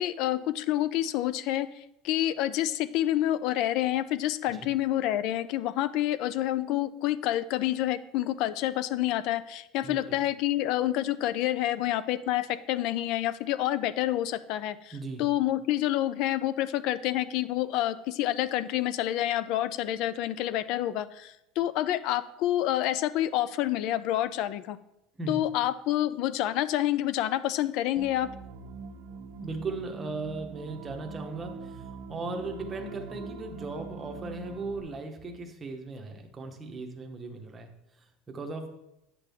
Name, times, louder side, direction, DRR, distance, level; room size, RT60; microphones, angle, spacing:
voice 1, 0.0-14.9 15.2-24.8 25.3-28.3, left 13 dB, 45° left, 15 dB, 0.4 m, -28 dB
voice 2, 9.8-10.2 14.9-15.2 25.2-25.5 29.4-37.7 38.0-38.7, right 3 dB, 15° right, 3 dB, 0.8 m, -37 dB
sound 1, 28.0-34.8, right 5 dB, 65° right, 0.7 m, -43 dB
9.1 x 5.8 x 3.5 m, 0.85 s
cardioid pair, 175°, 0 cm